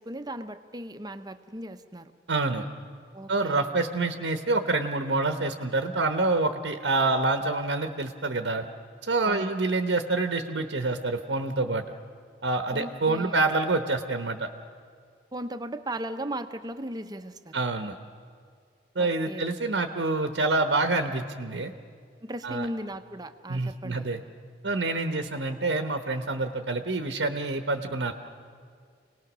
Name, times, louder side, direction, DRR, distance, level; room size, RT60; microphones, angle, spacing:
voice 1, 0.0-2.1 3.1-3.7 9.2-9.5 12.7-13.4 15.3-17.5 19.0-19.4 22.2-24.1, right 1 dB, 20° right, 10 dB, 0.8 m, -37 dB
voice 2, 2.3-2.7 3.3-8.7 9.0-11.8 12.4-14.5 17.5-17.9 18.9-21.7 22.4-22.7 23.5-24.2 24.6-28.1, right 3 dB, 75° right, 7 dB, 1.0 m, -27 dB
28.0 x 19.0 x 6.2 m, 2.1 s
head